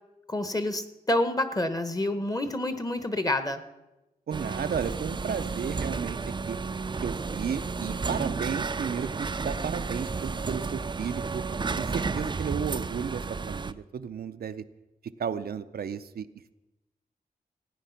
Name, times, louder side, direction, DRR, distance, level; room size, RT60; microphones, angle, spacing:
voice 1, 0.3-3.6, left 1 dB, 25° left, 10 dB, 1.0 m, -28 dB
sound 1, 4.3-13.7, right 4 dB, 30° right, 0.4 m, -32 dB
voice 2, 4.3-6.2 6.5-6.6 7.0-11.4 11.8-14.6 15.2-16.3, right 7 dB, 85° right, 10 dB, 0.6 m, -33 dB
16.5 x 9.3 x 5.8 m, 1.0 s
wide cardioid pair, 115°, 15 cm